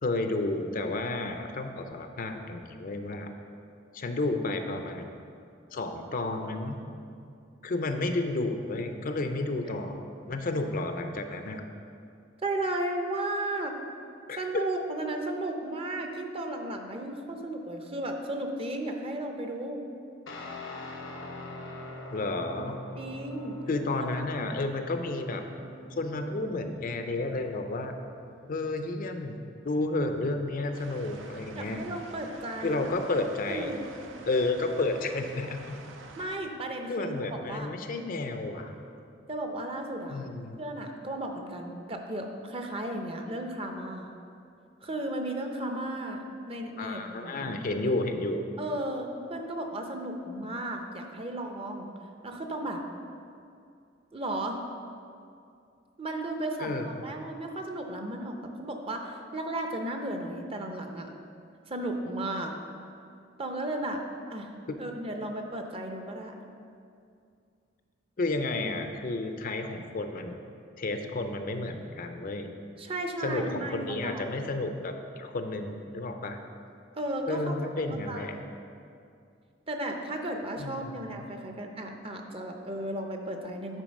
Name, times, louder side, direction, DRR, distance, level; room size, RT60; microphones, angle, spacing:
voice 1, 0.0-3.3 3.9-5.2 5.7-6.8 7.6-11.6 14.3-14.7 22.1-22.8 23.7-25.4 25.9-27.9 28.5-29.4 29.6-31.8 32.6-33.7 34.3-35.8 36.9-38.7 40.1-40.6 46.8-48.5 56.6-57.0 64.7-64.8 68.2-70.3 70.8-72.5 73.2-76.4 77.3-78.4 80.6-81.2, left 2 dB, 45° left, 6 dB, 0.5 m, -31 dB
voice 2, 12.4-13.8 14.4-19.8 23.0-23.6 31.6-32.9 33.5-33.8 36.2-37.7 39.3-40.2 40.6-44.1 44.8-47.6 48.6-51.9 52.2-52.8 54.1-54.6 56.0-61.1 61.7-62.5 63.4-64.5 64.8-66.3 72.8-74.4 76.9-77.6 77.9-78.5 79.7-83.8, right 1 dB, 30° right, 4 dB, 0.7 m, -34 dB
Guitar, 20.3-29.2, left 1 dB, 85° left, 1.0 m, -43 dB
sound 1, 30.7-36.4, right 3 dB, 75° right, 0.6 m, -48 dB
9.0 x 4.4 x 5.3 m, 2.4 s
head